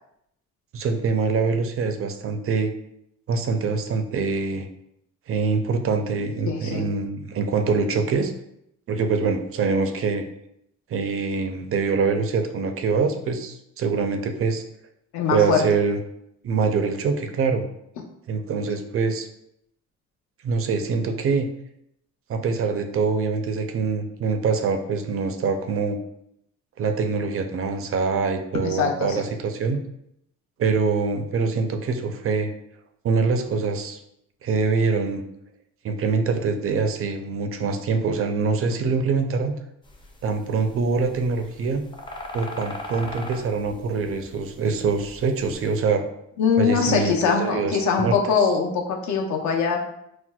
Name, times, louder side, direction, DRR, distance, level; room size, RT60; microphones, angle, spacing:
voice 1, 0.7-2.7 3.3-4.7 5.3-8.3 8.9-10.2 10.9-14.6 15.3-16.0 16.4-17.6 18.3-19.3 20.4-21.5 22.3-26.0 26.8-29.8 30.6-32.5 33.0-34.0 34.4-35.2 35.8-39.6 40.2-41.9 42.3-46.0 46.6-48.5, right 4 dB, 50° right, 6 dB, 0.4 m, -24 dB
voice 2, 6.5-6.8 15.1-15.6 28.6-29.2 46.4-49.9, left 6 dB, 70° left, 2 dB, 0.6 m, -22 dB
sound 1, 39.8-45.7, left 2 dB, 15° left, 0.4 m, -39 dB
4.2 x 2.1 x 2.2 m, 0.78 s
cardioid pair, 90°, 30 cm